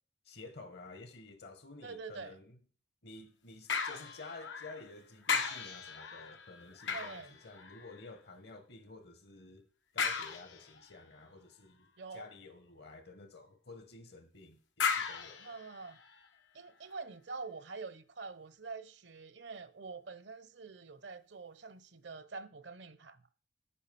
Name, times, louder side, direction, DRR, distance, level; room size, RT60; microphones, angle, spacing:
voice 1, 0.2-2.6 3.0-9.6 9.9-15.6, left 3 dB, 65° left, 1.5 m, -52 dB
voice 2, 1.8-2.4 6.9-7.3 12.0-12.3 15.4-16.0 16.5-23.2, right 4 dB, 70° right, 0.8 m, -46 dB
sound 1, 3.7-4.9 5.2-8.1 10.0-10.9 14.8-16.3 16.8-16.9, left 6 dB, 85° left, 1.3 m, -37 dB
8.7 x 5.7 x 7.0 m
head